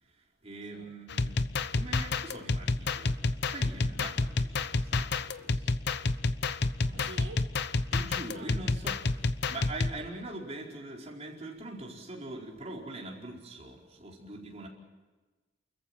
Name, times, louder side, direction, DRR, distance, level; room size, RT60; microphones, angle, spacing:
voice 1, 0.1-1.4 1.7-5.8 6.8-7.3 7.9-14.7, right 2 dB, 35° right, 4.7 m, -43 dB
sound 1, 1.1-10.0, left 3 dB, 60° left, 0.8 m, -29 dB
voice 2, 6.9-7.9 8.3-8.5, right 3 dB, 65° right, 1.7 m, -48 dB
29.5 x 14.5 x 8.9 m
head